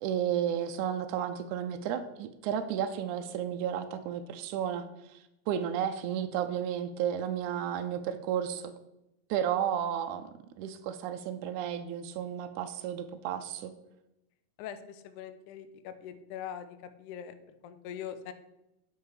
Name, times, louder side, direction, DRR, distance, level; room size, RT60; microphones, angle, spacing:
voice 1, 0.0-8.7 9.3-10.3 10.6-13.7, right 9 dB, 80° right, 6 dB, 1.8 m, -33 dB
voice 2, 14.6-17.4 17.6-18.3, left 9 dB, 75° left, 9 dB, 2.0 m, -42 dB
10.0 x 5.9 x 4.9 m, 0.90 s
omnidirectional pair, 3.9 m